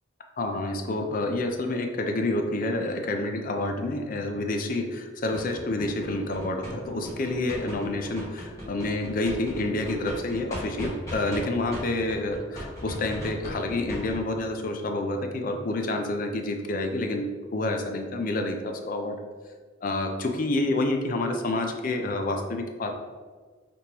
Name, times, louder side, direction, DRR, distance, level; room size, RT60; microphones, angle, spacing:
voice 1, 0.4-19.1 19.8-22.9, left 2 dB, 45° left, 4 dB, 0.4 m, -28 dB
sound 1, 5.3-11.4 11.7-14.2, equal, 15° left, 1.3 m, -38 dB
5.1 x 3.0 x 2.9 m, 1.5 s
head